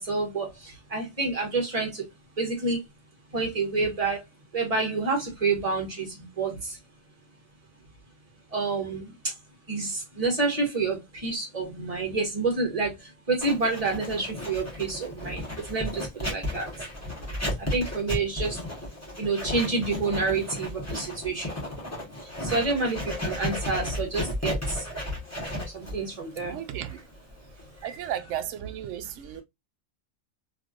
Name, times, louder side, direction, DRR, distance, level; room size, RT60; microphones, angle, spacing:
voice 1, 0.0-2.0 2.4-2.8 3.3-4.2 4.5-6.8 8.5-9.1 9.7-12.9 13.3-15.4 15.7-16.7 17.6-18.6 19.2-21.5 22.4-24.8 25.7-26.6 27.8-28.0, right 3 dB, 30° right, 1.3 m, -28 dB
Writing, 13.4-28.1, left 1 dB, 15° left, 1.1 m, -34 dB
voice 2, 26.4-27.0 27.8-29.4, right 10 dB, 70° right, 0.8 m, -34 dB
3.2 x 2.7 x 2.4 m
omnidirectional pair, 1.4 m